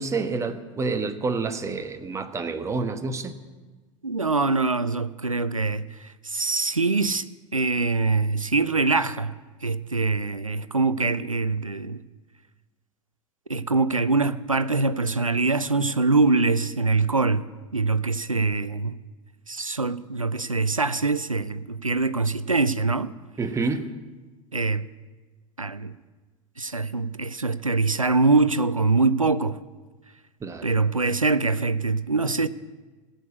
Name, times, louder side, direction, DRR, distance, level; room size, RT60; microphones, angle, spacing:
voice 1, 0.0-3.4 23.4-23.9 30.4-30.7, right 4 dB, 15° right, 1.2 m, -28 dB
voice 2, 4.0-7.3 7.5-12.0 13.5-17.4 17.7-19.0 19.5-23.1 24.5-24.9 25.6-25.9 26.6-29.6 30.6-32.5, right 3 dB, 90° right, 0.6 m, -24 dB
15.5 x 8.0 x 9.4 m
figure-of-eight pair, 85°, 17 cm